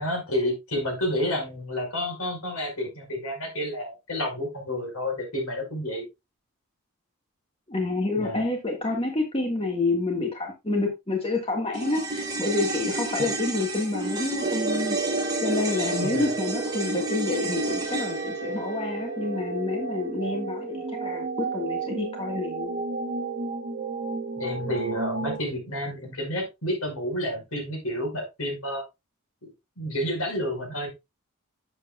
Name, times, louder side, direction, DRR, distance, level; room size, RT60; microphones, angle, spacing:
voice 1, 0.0-6.0 8.2-8.4 13.2-13.3 16.0-16.3 24.4-28.8 29.4-30.9, left 1 dB, 75° left, 2 dB, 5.3 m, -30 dB
voice 2, 7.7-22.7, left 2 dB, 25° left, 2 dB, 1.7 m, -28 dB
sound 1, 11.7-20.2 20.5-20.6, right 2 dB, 20° right, 3.7 m, -32 dB
sound 2, 14.4-25.4, right 3 dB, 40° right, 1.7 m, -32 dB
10.5 x 8.2 x 2.4 m, 0.23 s
head